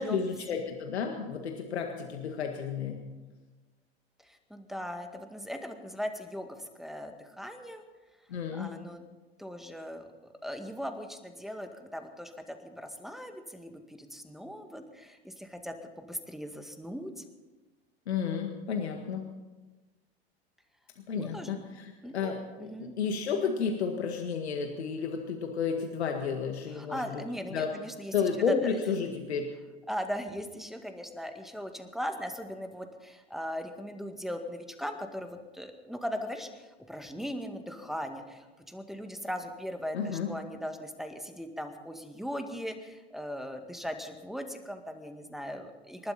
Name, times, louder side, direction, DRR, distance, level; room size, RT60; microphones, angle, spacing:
voice 1, 0.0-3.0 8.3-8.7 18.1-19.3 21.1-27.2 27.5-27.7 28.1-29.5 39.9-40.3, left 6 dB, 80° left, 3 dB, 1.8 m, -32 dB
voice 2, 4.2-7.8 8.5-9.0 9.4-10.1 10.4-17.2 21.2-21.5 22.0-22.3 22.6-23.0 26.7-28.8 29.9-46.1, equal, ahead, 6 dB, 2.0 m, -39 dB
28.5 x 12.0 x 4.3 m, 1.2 s
hypercardioid pair, 85°, 32 cm